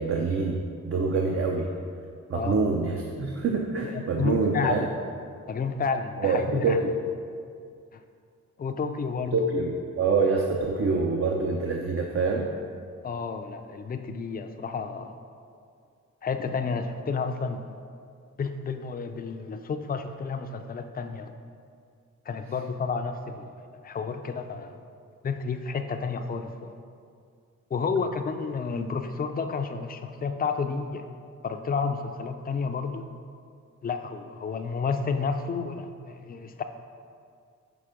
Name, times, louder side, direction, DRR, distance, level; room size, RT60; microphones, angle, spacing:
voice 1, 0.0-1.7 2.3-4.9 6.2-6.9 9.3-12.5, right 4 dB, 50° right, 1 dB, 0.5 m, -26 dB
voice 2, 2.3-2.7 3.8-4.9 5.5-6.8 7.9-8.0 8.6-9.5 13.0-15.1 16.2-17.7 18.4-21.3 22.3-23.6 23.8-24.8 25.2-26.8 27.7-31.1 31.4-33.0 33.8-36.6, left 5 dB, 30° left, 7 dB, 0.4 m, -31 dB
5.8 x 4.1 x 5.0 m, 2.3 s
cardioid pair, 90°, 29 cm